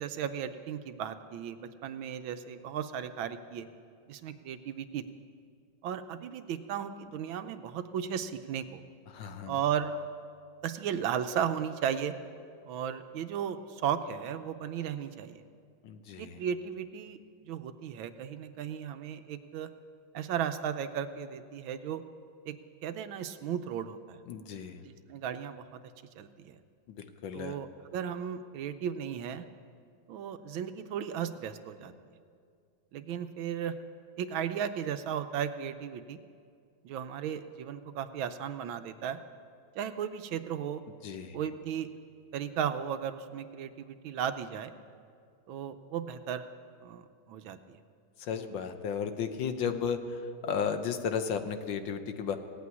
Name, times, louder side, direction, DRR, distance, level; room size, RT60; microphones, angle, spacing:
voice 1, 0.0-3.7 4.1-5.0 5.8-8.8 9.5-9.9 10.6-12.2 12.7-15.4 16.2-17.2 17.5-19.7 20.1-22.0 22.5-22.6 22.8-24.2 25.1-25.8 26.2-26.6 27.3-29.4 30.1-31.9 32.9-33.8 34.2-36.2 36.8-39.2 39.7-40.8 41.3-41.9 42.3-44.7 45.5-46.5 46.8-47.0 47.3-47.8, right 8 dB, 80° right, 10 dB, 1.4 m, -35 dB
voice 2, 9.1-9.5 15.8-16.4 24.3-24.8 27.0-27.6 41.0-41.4 48.2-52.4, left 6 dB, 70° left, 8 dB, 1.5 m, -34 dB
17.0 x 8.5 x 9.5 m, 2.3 s
omnidirectional pair, 2.3 m